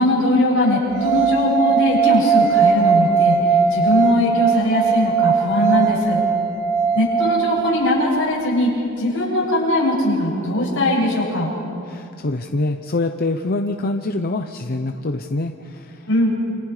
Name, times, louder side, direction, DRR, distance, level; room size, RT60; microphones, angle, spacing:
voice 1, 0.0-3.4 3.7-6.2 6.9-8.7 9.0-11.5 16.1-16.3, left 1 dB, 60° left, -4 dB, 7.6 m, -20 dB
sound 1, 0.9-8.0, right 5 dB, 85° right, 5.2 m, -19 dB
voice 2, 11.9-16.1, left 2 dB, 45° left, 6 dB, 0.8 m, -25 dB
29.0 x 27.0 x 5.0 m, 2.5 s
head